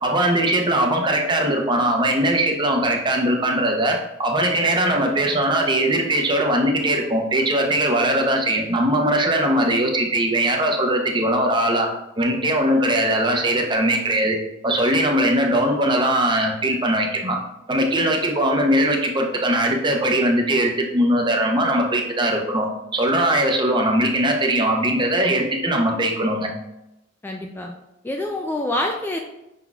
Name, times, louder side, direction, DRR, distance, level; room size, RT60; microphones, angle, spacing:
voice 1, 0.0-14.4 14.6-17.4 17.7-22.7 22.9-26.5, right 1 dB, 25° right, 2 dB, 0.7 m, -20 dB
voice 2, 27.2-27.7 28.0-29.2, left 1 dB, 10° left, 1 dB, 0.3 m, -26 dB
5.7 x 4.0 x 2.3 m, 0.89 s
head